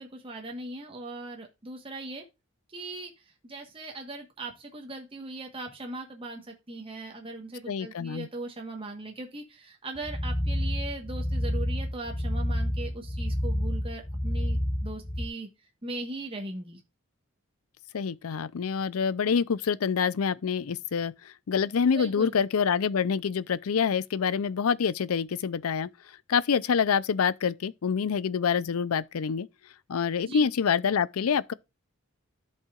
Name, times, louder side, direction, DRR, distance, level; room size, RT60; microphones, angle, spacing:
voice 1, 0.0-2.2 2.7-15.5 15.8-16.8 21.9-22.3 30.2-30.5, right 2 dB, 25° right, 1.2 m, -39 dB
voice 2, 7.7-8.3 17.9-25.9 26.3-29.5 29.9-31.5, left 6 dB, 85° left, 0.5 m, -26 dB
sound 1, 10.0-15.3, equal, 15° left, 0.7 m, -29 dB
13.5 x 5.5 x 2.4 m
head